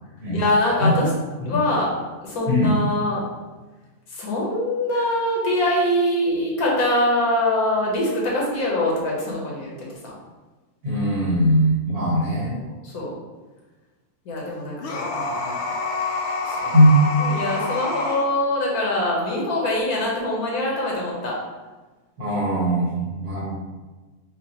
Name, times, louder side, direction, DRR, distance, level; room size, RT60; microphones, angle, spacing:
voice 1, 0.3-1.1 1.4-1.9 2.2-3.2 4.1-10.1 12.2-13.1 14.2-15.6 16.4-16.7 17.1-21.4, left 1 dB, 80° left, -4 dB, 1.6 m, -24 dB
voice 2, 10.8-12.6 16.6-16.9 22.2-23.5, equal, 80° right, -6 dB, 2.0 m, -20 dB
sound 1, 14.8-18.3, left 3 dB, 60° left, 0.8 m, -27 dB
5.9 x 2.4 x 2.9 m, 1.2 s
omnidirectional pair, 1.6 m